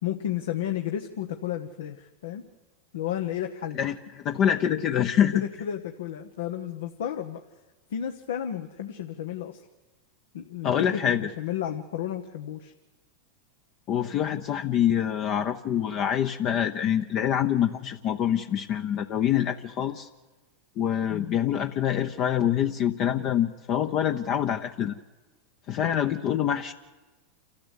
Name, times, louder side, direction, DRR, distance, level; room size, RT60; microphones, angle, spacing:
voice 1, 0.0-2.4 2.9-3.8 5.3-7.4 7.9-9.6 10.3-12.7 21.1-21.4 25.8-26.0, left 10 dB, 80° left, 5 dB, 1.2 m, -32 dB
voice 2, 3.7-5.4 10.6-11.3 13.9-20.1 20.8-25.0 25.7-26.7, left 10 dB, 45° left, 6 dB, 0.9 m, -25 dB
28.5 x 13.0 x 8.4 m, 1.2 s
hypercardioid pair, 105°, 0 cm